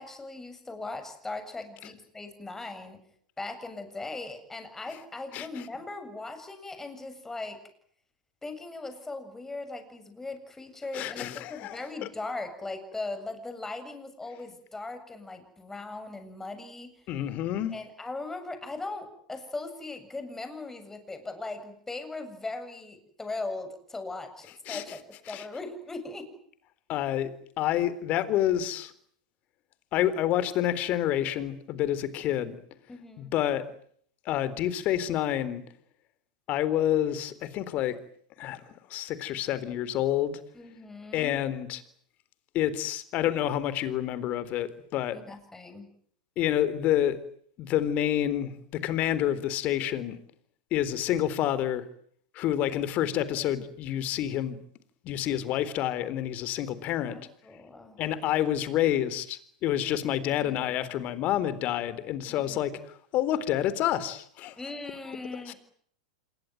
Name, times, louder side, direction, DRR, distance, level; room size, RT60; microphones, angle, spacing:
voice 1, 0.0-3.0 3.4-7.6 8.4-16.9 17.7-25.0 25.3-26.3 32.9-33.4 40.5-41.4 45.1-45.9 57.1-58.0 60.3-60.7 62.3-62.7 64.6-65.6, left 3 dB, 10° left, 7 dB, 7.5 m, -39 dB
voice 2, 10.9-11.8 17.1-17.7 24.7-24.8 25.3-25.4 26.9-27.3 27.6-28.9 29.9-32.6 33.2-33.6 34.3-35.6 36.5-38.0 38.4-40.4 41.1-41.8 42.5-45.2 46.4-47.2 47.6-50.2 50.7-51.8 52.3-54.6 55.0-57.2 58.0-62.7 63.1-64.5 65.5-65.6, left 11 dB, 40° left, 16 dB, 3.9 m, -28 dB
27.5 x 22.5 x 9.3 m, 0.63 s
hypercardioid pair, 100°, 4 cm